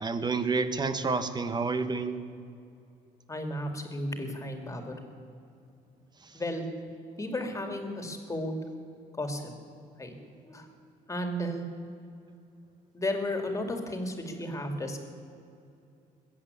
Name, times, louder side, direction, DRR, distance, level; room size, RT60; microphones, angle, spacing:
voice 1, 0.0-2.2 6.2-6.3, right 4 dB, 25° right, 10 dB, 1.1 m, -29 dB
voice 2, 3.3-5.0 6.3-6.7 7.2-8.5 9.2-9.4 10.0-10.1 10.4-10.7 11.1-11.6 12.9-15.0, left 1 dB, 20° left, 5 dB, 2.4 m, -33 dB
21.0 x 8.4 x 8.3 m, 2.6 s
cardioid pair, 110°, 17 cm